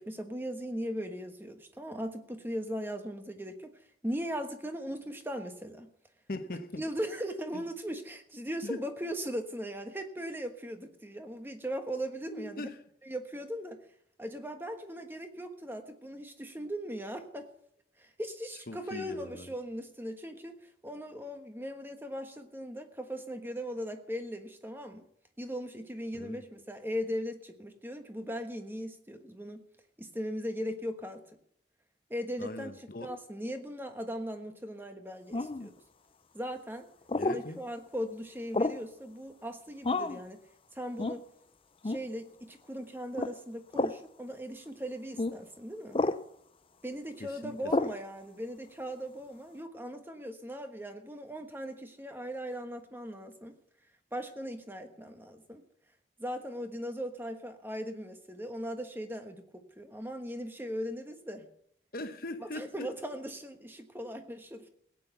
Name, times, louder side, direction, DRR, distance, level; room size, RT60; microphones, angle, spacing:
voice 1, 0.0-3.7 4.0-5.9 6.8-12.7 13.0-13.8 14.2-17.5 18.0-20.6 20.8-25.0 25.4-29.6 30.0-31.2 32.1-35.7 36.3-36.9 37.3-40.4 40.7-41.2 41.8-46.0 46.8-53.5 54.1-55.6 56.2-61.5 62.5-64.7, equal, 10° right, 1.2 m, -38 dB
voice 2, 6.3-6.8 7.5-7.6 8.6-8.8 12.3-12.8 18.7-19.5 26.1-26.4 32.4-33.1 37.2-37.6 47.2-47.7 61.9-62.9, left 1 dB, 50° left, 1.1 m, -40 dB
sound 1, 35.3-35.7 37.1-37.4 38.5-38.9 39.8-40.2 41.0-41.2 41.8-42.1 43.1-43.3 43.7-44.0 45.2-45.3 45.9-46.2 47.7-48.0, left 2 dB, 30° left, 0.5 m, -30 dB
17.0 x 9.1 x 5.9 m
head